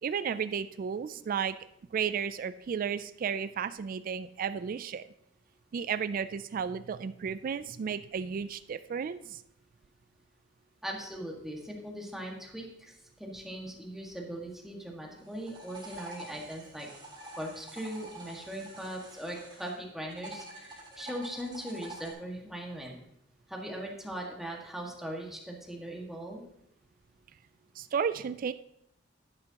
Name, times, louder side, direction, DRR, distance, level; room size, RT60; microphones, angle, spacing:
voice 1, 0.0-1.6 1.9-5.1 5.7-9.4 27.8-28.5, right 7 dB, 45° right, 13 dB, 0.3 m, -33 dB
voice 2, 10.8-16.9 17.4-22.9 23.5-26.4, right 1 dB, ahead, -1 dB, 1.7 m, -40 dB
sound 1, 15.2-19.8 20.1-22.1, right 1 dB, 25° right, 3.4 m, -47 dB
11.0 x 10.5 x 2.9 m, 0.78 s
head